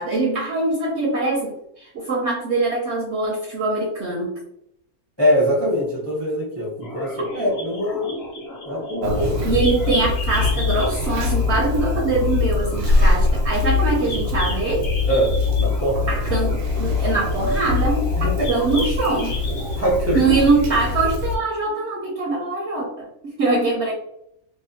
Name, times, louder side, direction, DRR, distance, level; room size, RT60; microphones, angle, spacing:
voice 1, 0.0-4.3 9.4-14.9 16.1-18.1 18.5-19.4 20.1-23.9, right 3 dB, 65° right, -1 dB, 0.7 m, -23 dB
voice 2, 5.2-8.1 8.7-9.6 15.1-16.1 18.2-18.5 19.7-20.4, equal, 20° left, -4 dB, 0.4 m, -23 dB
sound 1, 6.8-21.0, left 1 dB, 55° left, 0.8 m, -33 dB
Conversation, 9.0-21.4, left 3 dB, 85° right, 1.1 m, -23 dB
2.8 x 2.1 x 2.7 m, 0.75 s
omnidirectional pair, 1.6 m